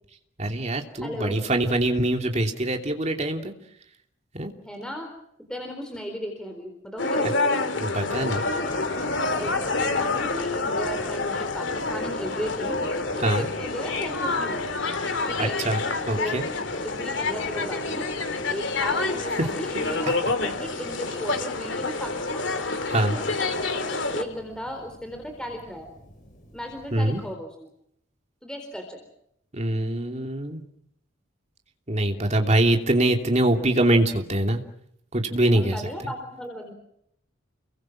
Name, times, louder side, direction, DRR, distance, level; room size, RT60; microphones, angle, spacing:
voice 1, 0.4-3.5 4.3-4.5 7.8-8.4 13.2-13.5 15.4-15.8 16.0-16.4 19.4-19.5 22.9-23.1 26.9-27.2 29.5-30.6 31.9-34.6 35.1-35.8, right 1 dB, 35° right, 4 dB, 3.0 m, -23 dB
voice 2, 1.0-1.4 4.6-5.1 5.5-7.4 9.4-12.8 13.3-14.7 15.2-15.6 16.2-16.5 16.8-18.1 18.5-22.5 23.0-23.3 23.9-25.9 26.5-27.7 28.4-29.0 35.4-36.7, equal, 5° left, 4 dB, 4.1 m, -36 dB
sound 1, 7.0-24.2, left 3 dB, 60° left, 2.7 m, -28 dB
sound 2, 8.1-27.3, left 1 dB, 40° left, 5.4 m, -43 dB
30.0 x 23.0 x 6.1 m, 0.74 s
head